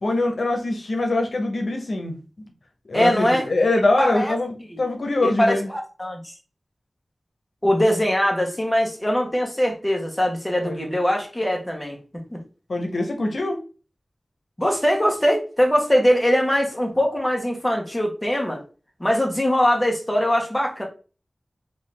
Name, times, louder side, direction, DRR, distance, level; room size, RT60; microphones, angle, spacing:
voice 1, 0.0-2.2 2.8-5.7 10.6-10.9 12.7-13.6, left 2 dB, 85° left, 3 dB, 0.8 m, -23 dB
voice 2, 2.9-3.5 4.0-4.3 4.7-4.8 5.2-6.3 7.6-12.0 12.3-12.4 14.6-18.6 19.0-20.9, equal, 10° left, 1 dB, 1.1 m, -21 dB
3.8 x 2.6 x 3.3 m, 0.35 s
wide cardioid pair, 75°, 0 cm